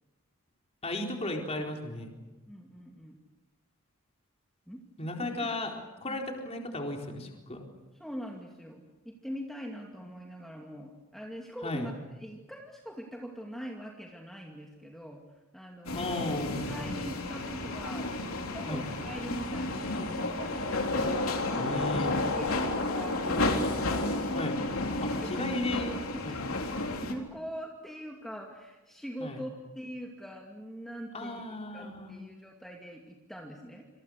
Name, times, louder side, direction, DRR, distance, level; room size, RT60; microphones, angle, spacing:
voice 1, 0.8-2.1 5.0-5.7 6.0-7.6 9.9-10.0 11.6-11.9 15.9-16.7 18.7-18.9 21.6-22.1 24.3-24.6 25.0-26.0 26.2-26.4 29.2-29.4 31.1-32.1, left 1 dB, 30° left, 1 dB, 4.3 m, -35 dB
voice 2, 2.5-3.2 4.7-4.8 5.4-5.5 6.1-6.2 8.0-16.2 16.7-21.9 22.3-24.2 25.1-25.7 26.1-26.4 26.9-31.4 31.7-33.9, equal, ahead, 0 dB, 2.4 m, -43 dB
sound 1, 15.9-27.1, left 2 dB, 75° left, 3.7 m, -31 dB
28.0 x 27.5 x 6.6 m, 1.1 s
head